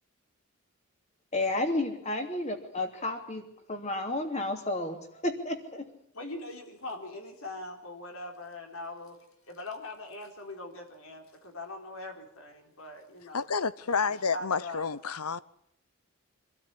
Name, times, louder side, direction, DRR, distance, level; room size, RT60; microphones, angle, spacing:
voice 1, 1.3-5.9, left 2 dB, 30° left, 2.9 m, -32 dB
voice 2, 6.1-9.2 9.5-13.5 14.0-14.9, left 2 dB, 65° left, 4.1 m, -41 dB
voice 3, 13.3-15.4, left 5 dB, 90° left, 0.9 m, -29 dB
25.5 x 13.0 x 9.9 m
head